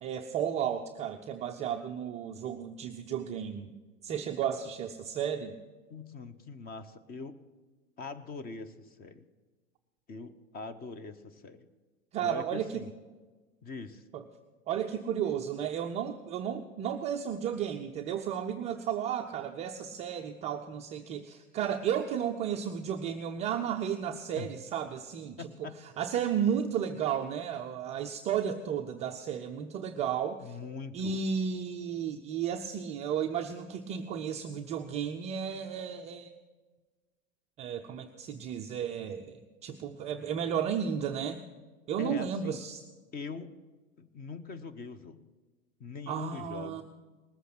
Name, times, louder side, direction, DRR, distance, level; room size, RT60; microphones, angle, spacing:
voice 1, 0.0-3.7 4.0-5.5 12.1-12.7 14.1-14.2 14.7-25.4 26.0-30.6 30.9-36.3 37.6-41.4 41.9-42.8 46.1-46.8, right 8 dB, 20° right, 4 dB, 0.4 m, -33 dB
voice 2, 5.9-7.4 8.0-9.2 10.1-11.7 12.2-12.9 13.6-14.0 24.4-24.5 25.4-25.8 30.4-31.2 42.0-42.6 43.1-43.5 44.0-45.2 45.8-46.8, left 4 dB, 20° left, 12 dB, 0.8 m, -42 dB
19.5 x 8.2 x 6.0 m, 1.3 s
hypercardioid pair, 110°, 40 cm